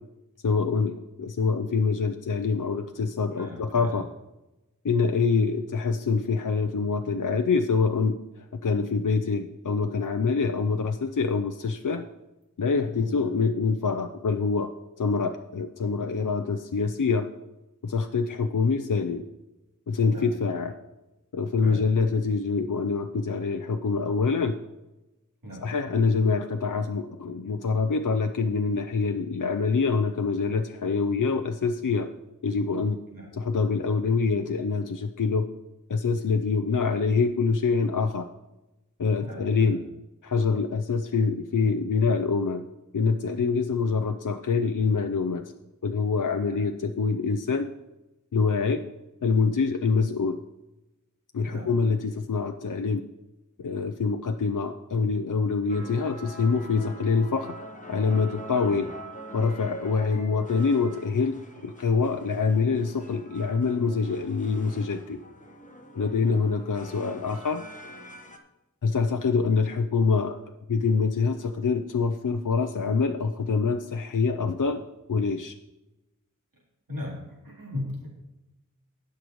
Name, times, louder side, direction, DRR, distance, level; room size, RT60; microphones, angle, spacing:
voice 1, 0.4-4.1 4.8-12.0 12.6-14.7 15.0-17.3 17.8-19.2 19.9-20.7 21.3-24.5 25.6-32.1 32.4-33.0 33.3-35.5 35.9-38.3 39.0-39.8 40.2-42.6 42.9-45.4 45.8-47.7 48.3-48.8 49.2-50.4 51.3-53.0 53.6-57.5 57.9-58.9 59.3-61.4 61.6-65.2 65.9-67.6 68.8-70.4 70.7-74.8 75.1-75.5, left 4 dB, 70° left, 6 dB, 0.6 m, -25 dB
voice 2, 3.3-4.0 13.0-13.2 20.1-20.3 21.6-21.8 25.4-25.7 33.1-33.3 39.2-39.8 46.5-46.6 51.5-51.7 58.6-58.8 66.2-66.4 76.9-78.1, left 1 dB, 90° right, -4 dB, 3.6 m, -38 dB
sound 1, 55.7-68.4, right 1 dB, 25° left, 1.3 m, -44 dB
19.5 x 6.6 x 3.1 m, 0.99 s
wide cardioid pair, 45°, 33 cm